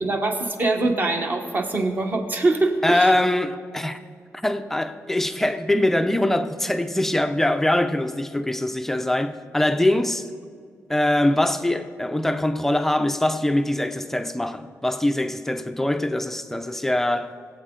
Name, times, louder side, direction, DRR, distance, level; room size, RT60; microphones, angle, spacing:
voice 1, 0.0-3.1, right 2 dB, 35° right, 1.1 m, -23 dB
voice 2, 2.8-4.0 4.4-10.3 10.9-17.3, left 1 dB, 5° left, 0.4 m, -23 dB
21.0 x 8.1 x 3.7 m
wide cardioid pair, 170°, 6 cm